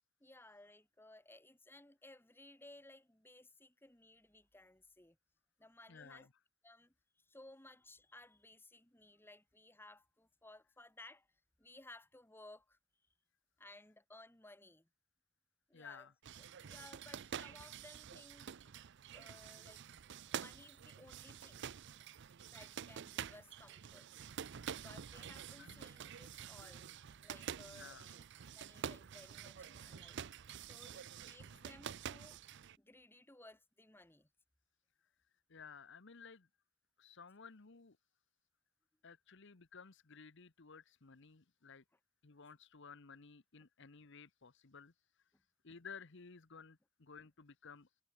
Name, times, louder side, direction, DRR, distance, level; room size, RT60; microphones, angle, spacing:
voice 1, 0.2-5.2 5.6-6.3 6.6-11.3 11.6-12.8 13.6-14.9 15.7-16.1 16.4-18.6 19.1-19.8 20.4-21.6 22.5-24.1 24.7-26.9 27.2-28.2 28.6-30.2 30.6-32.4 32.8-34.3 45.3-45.4, left 2 dB, 10° left, 2.0 m, -59 dB
voice 2, 5.9-6.3 15.7-16.1 20.3-20.4 25.6-25.9 27.6-28.1 35.5-36.5 37.0-38.0 39.0-41.8 42.2-44.9 45.6-47.9, left 5 dB, 60° left, 1.1 m, -55 dB
sound 1, 16.2-32.8, right 8 dB, 60° right, 0.5 m, -48 dB
head